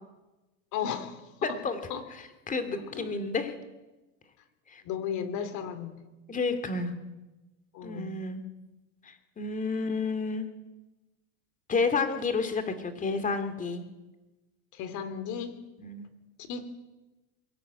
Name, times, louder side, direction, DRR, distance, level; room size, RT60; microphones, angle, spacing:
voice 1, 0.7-1.6 1.9-2.0 2.7-3.1 4.8-6.0 7.7-8.1 14.7-15.6 16.5-16.7, left 7 dB, 45° left, 11 dB, 3.1 m, -35 dB
voice 2, 1.4-1.8 2.5-3.5 4.7-4.8 6.3-6.9 7.8-8.4 9.0-10.5 11.7-13.8 15.8-16.0, left 4 dB, 20° left, 9 dB, 2.5 m, -30 dB
22.0 x 16.0 x 9.0 m, 1.1 s
supercardioid pair, 135°, 41 cm